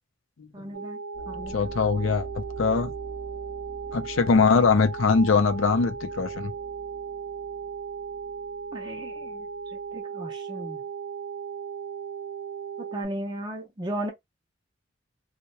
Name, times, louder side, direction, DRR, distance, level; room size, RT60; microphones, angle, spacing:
voice 1, 0.5-1.0 1.3-1.5 8.7-10.8 12.9-14.1, right 1 dB, 20° right, 0.4 m, -36 dB
sound 1, 0.7-13.1, right 6 dB, 65° right, 0.6 m, -36 dB
sound 2, 1.1-9.9, right 1 dB, 25° left, 0.7 m, -45 dB
voice 2, 1.5-2.9 3.9-6.5, left 5 dB, 75° left, 0.5 m, -22 dB
2.2 x 2.1 x 2.8 m
head